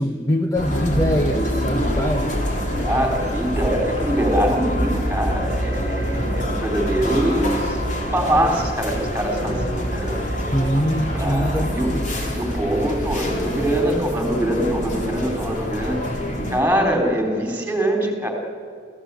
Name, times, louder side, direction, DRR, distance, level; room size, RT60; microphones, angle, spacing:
voice 1, 0.0-2.3 10.5-12.1, equal, 15° left, 5 dB, 0.9 m, -23 dB
sound 1, 0.5-16.6, equal, 40° left, 3.7 m, -25 dB
voice 2, 2.8-7.8 8.1-10.2 10.7-10.8 11.1-11.9 12.3-16.0 16.5-18.3, right 1 dB, 10° right, 2 dB, 3.6 m, -23 dB
28.5 x 16.0 x 8.3 m, 2.3 s
head